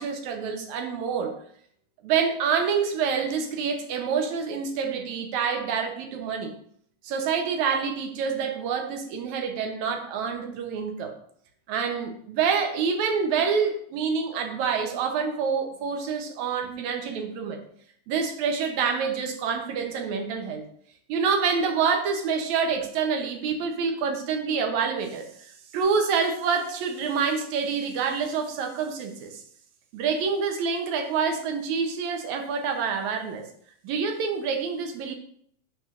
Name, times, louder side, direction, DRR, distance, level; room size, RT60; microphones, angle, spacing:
voice 1, 0.0-1.3 2.0-6.5 7.0-11.2 11.7-17.6 18.1-20.6 21.1-25.3 25.7-29.4 29.9-33.4 33.8-35.1, right 6 dB, 75° right, 4 dB, 2.1 m, -27 dB
10.5 x 4.3 x 2.5 m, 0.63 s
omnidirectional pair, 3.5 m